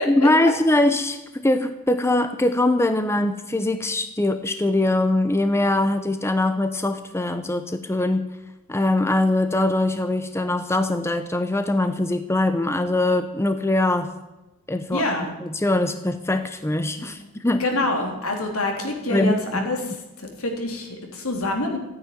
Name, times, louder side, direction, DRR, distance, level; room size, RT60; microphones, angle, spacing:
voice 1, 0.1-8.2 8.7-14.1 14.7-15.0 15.4-17.7 19.1-19.6, left 2 dB, 10° left, 9 dB, 0.7 m, -22 dB
voice 2, 14.9-15.3 17.0-17.1 17.5-21.8, left 2 dB, 70° left, 2 dB, 3.5 m, -26 dB
14.5 x 9.6 x 9.7 m, 1.0 s
head